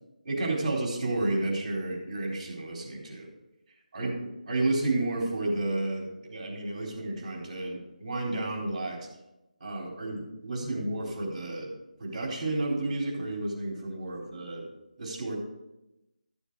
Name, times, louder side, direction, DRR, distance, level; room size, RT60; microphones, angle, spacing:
voice 1, 0.2-3.3 3.9-4.1 4.5-9.1 9.6-11.7 12.0-14.7 15.0-15.4, right 2 dB, 35° right, -1 dB, 3.8 m, -31 dB
13.0 x 7.1 x 4.7 m, 0.95 s
figure-of-eight pair, 165°, 5 cm